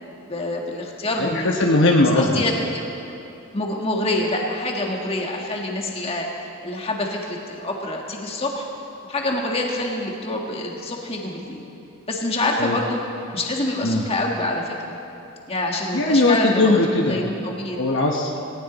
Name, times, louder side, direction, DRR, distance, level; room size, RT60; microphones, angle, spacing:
voice 1, 0.3-1.5 2.1-2.8 3.5-6.3 6.6-8.6 9.1-11.6 12.1-13.0 13.3-15.0 15.5-16.8 17.1-17.8, left 1 dB, 25° left, 0 dB, 1.7 m, -26 dB
voice 2, 1.2-2.4 12.6-12.8 13.8-14.0 15.9-17.2 17.8-18.4, left 2 dB, 55° left, 0 dB, 1.1 m, -19 dB
18.5 x 18.0 x 4.1 m, 2.8 s
head